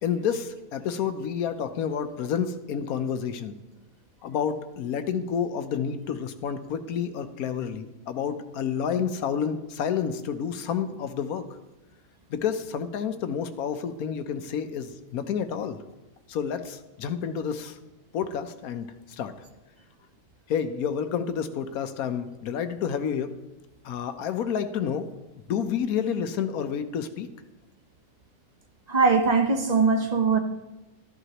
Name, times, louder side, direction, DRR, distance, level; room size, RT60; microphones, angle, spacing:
voice 1, 0.0-3.6 4.2-11.4 12.3-15.8 16.3-17.8 18.1-19.3 20.5-23.3 23.8-25.1 25.5-27.3, left 7 dB, 75° left, 9 dB, 1.2 m, -29 dB
voice 2, 28.9-30.4, right 4 dB, 40° right, 5 dB, 0.6 m, -21 dB
13.0 x 11.0 x 2.9 m, 1.0 s
omnidirectional pair, 1.6 m